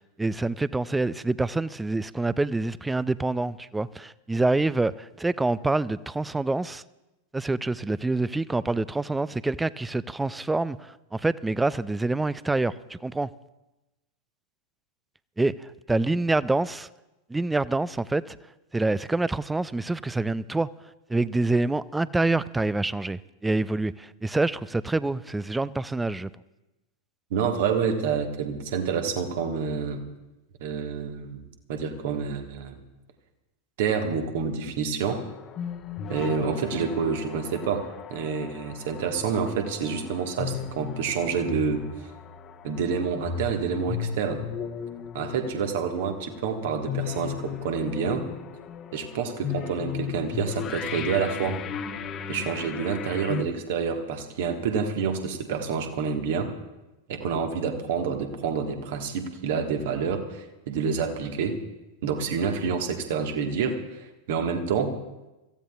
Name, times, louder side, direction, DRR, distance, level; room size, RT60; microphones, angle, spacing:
voice 1, 0.2-6.8 7.3-13.3 15.4-16.9 17.3-18.4 18.7-20.7 21.1-26.3, right 2 dB, 10° right, 20 dB, 0.3 m, -26 dB
voice 2, 27.3-30.0 30.6-31.4 31.7-32.8 33.8-35.2 36.1-41.8 42.6-44.4 45.1-48.3 48.9-51.6 52.3-56.5 57.1-61.6 62.0-65.0, right 6 dB, 55° right, 5 dB, 1.5 m, -28 dB
sound 1, 35.1-53.4, left 7 dB, 30° left, 1.0 m, -36 dB
25.5 x 15.0 x 2.4 m, 1.0 s
figure-of-eight pair, 90°, 0 cm